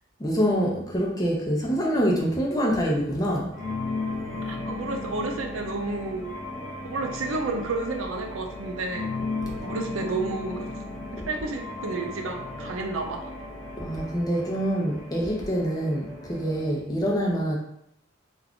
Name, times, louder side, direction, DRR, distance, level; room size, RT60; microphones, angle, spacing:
voice 1, 0.2-3.5 13.8-17.5, equal, 20° left, -3 dB, 0.5 m, -25 dB
sound 1, 3.5-16.8, left 2 dB, 70° left, 1.0 m, -36 dB
voice 2, 4.5-6.4 6.8-9.1 9.6-10.7 11.1-13.3, right 3 dB, 75° right, 3 dB, 0.4 m, -31 dB
2.3 x 2.3 x 3.5 m, 0.76 s
head